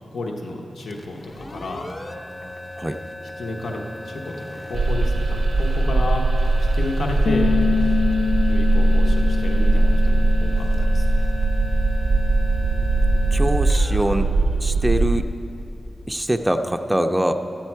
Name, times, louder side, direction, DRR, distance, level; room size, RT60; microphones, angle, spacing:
voice 1, 0.1-1.9 3.4-6.2 6.6-7.5 8.5-11.2, left 2 dB, 90° left, 0 dB, 1.0 m, -31 dB
sound 1, 0.8-15.4, left 1 dB, 30° left, 0.7 m, -37 dB
sound 2, 4.7-15.2, right 2 dB, 80° right, 0.4 m, -20 dB
Bass guitar, 7.3-13.5, left 6 dB, 70° left, 0.3 m, -28 dB
voice 2, 13.3-14.3 14.6-15.3 16.1-17.3, right 1 dB, 10° right, 5 dB, 0.4 m, -23 dB
13.5 x 9.0 x 4.5 m, 2.8 s
wide cardioid pair, 115°, 0 cm